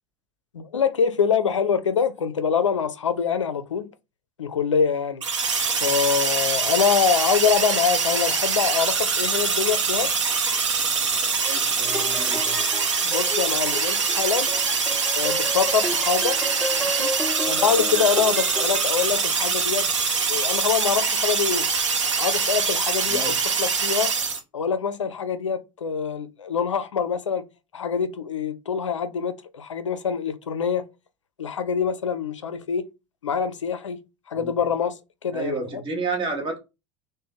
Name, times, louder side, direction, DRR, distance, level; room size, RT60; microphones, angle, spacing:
voice 1, 0.5-3.9 4.4-5.2 5.8-10.1 13.0-14.5 15.2-16.4 16.8-17.1 17.5-19.9 20.3-21.7 22.2-24.1 24.5-27.4 27.7-30.8 31.4-32.9 33.2-34.0 34.3-35.8, left 7 dB, 80° left, 0.4 m, -25 dB
sound 1, 5.2-24.4, right 5 dB, 80° right, 0.7 m, -24 dB
voice 2, 11.4-12.6 23.1-23.4 34.3-34.5 35.3-36.6, right 3 dB, 35° right, 1.3 m, -31 dB
sound 2, 11.9-18.8, equal, ahead, 0.8 m, -33 dB
3.2 x 2.1 x 3.7 m
figure-of-eight pair, 70°, 15 cm